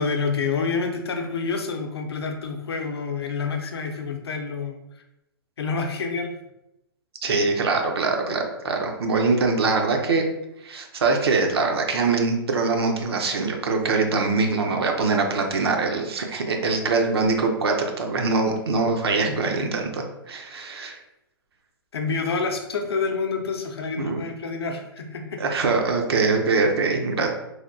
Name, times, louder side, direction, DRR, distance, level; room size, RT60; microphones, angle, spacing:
voice 1, 0.0-4.8 5.6-6.3 19.2-19.7 21.9-25.4, left 4 dB, 85° left, 4 dB, 0.5 m, -28 dB
voice 2, 7.2-10.2 10.6-21.0 24.0-24.2 25.4-27.3, right 4 dB, 80° right, 3 dB, 0.6 m, -23 dB
3.2 x 2.3 x 2.5 m, 0.88 s
hypercardioid pair, 135°, 13 cm